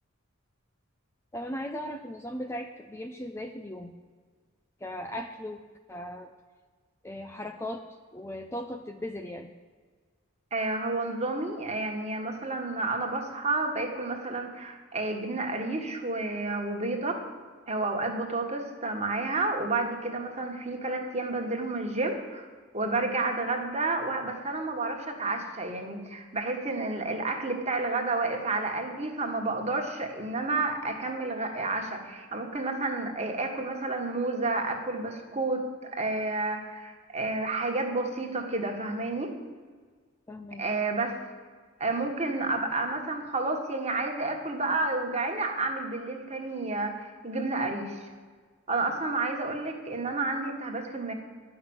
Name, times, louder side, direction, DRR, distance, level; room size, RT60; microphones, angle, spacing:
voice 1, 1.3-3.9 4.8-5.6 5.9-6.3 7.0-7.8 8.1-9.5 40.3-40.6, left 1 dB, 15° left, 5 dB, 0.4 m, -37 dB
voice 2, 10.5-17.2 17.7-22.5 22.7-35.7 35.9-39.3 40.6-41.2 41.8-48.1 48.7-51.1, right 2 dB, 30° right, 3 dB, 1.4 m, -30 dB
11.0 x 5.9 x 8.7 m, 1.5 s
head